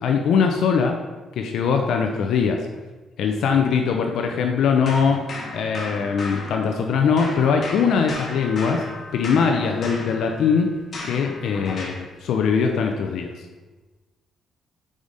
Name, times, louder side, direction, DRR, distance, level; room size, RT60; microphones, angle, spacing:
voice 1, 0.0-1.0 1.3-2.7 3.2-5.3 5.5-8.9 9.1-10.8 11.0-13.4, left 6 dB, 75° left, 3 dB, 0.5 m, -21 dB
sound 1, 4.9-6.9 7.2-12.1, left 2 dB, 45° left, 1.2 m, -35 dB
5.0 x 4.9 x 4.0 m, 1.2 s
cardioid pair, 90°, 0 cm